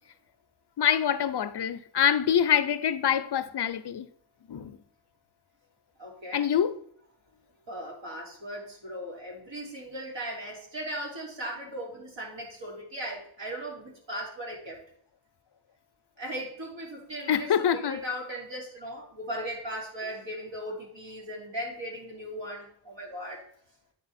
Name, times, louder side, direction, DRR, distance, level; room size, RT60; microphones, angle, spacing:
voice 1, 0.8-4.1 4.5-4.8 6.3-6.8 17.3-18.0, left 9 dB, 60° left, 0.6 m, -25 dB
voice 2, 6.0-6.4 7.7-14.8 16.2-23.4, equal, 70° right, 3.0 m, -38 dB
9.5 x 5.1 x 4.2 m
wide cardioid pair, 90°, 45 cm